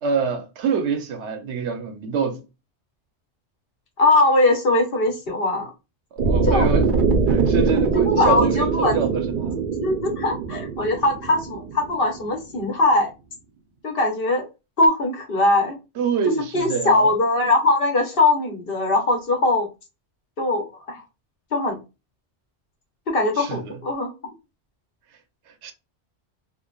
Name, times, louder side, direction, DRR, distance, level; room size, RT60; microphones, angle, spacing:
voice 1, 0.0-2.4 6.1-6.9 7.3-9.5 16.0-17.1 23.4-23.8 25.6-25.7, right 5 dB, 75° right, 0.9 m, -25 dB
voice 2, 4.0-5.7 6.5-6.7 7.9-9.0 9.8-13.1 13.8-14.4 14.8-15.8 16.5-19.7 20.4-21.0 21.5-21.8 23.1-24.1, left 2 dB, 55° left, 1.0 m, -21 dB
sound 1, 6.2-12.3, right 4 dB, 55° right, 0.7 m, -22 dB
3.1 x 2.1 x 2.3 m
omnidirectional pair, 1.2 m